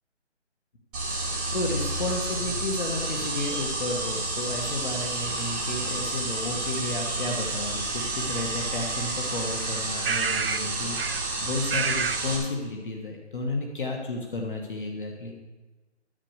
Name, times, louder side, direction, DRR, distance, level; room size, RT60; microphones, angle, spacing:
sound 1, 0.9-12.4, right 2 dB, ahead, 0.8 m, -30 dB
voice 1, 1.5-15.4, left 2 dB, 45° left, 0 dB, 1.5 m, -32 dB
sound 2, 8.6-8.7 10.0-10.7 11.0-11.2 11.7-12.2, right 6 dB, 55° right, 0.5 m, -28 dB
11.5 x 6.9 x 6.5 m, 1.2 s
figure-of-eight pair, 160°, 36 cm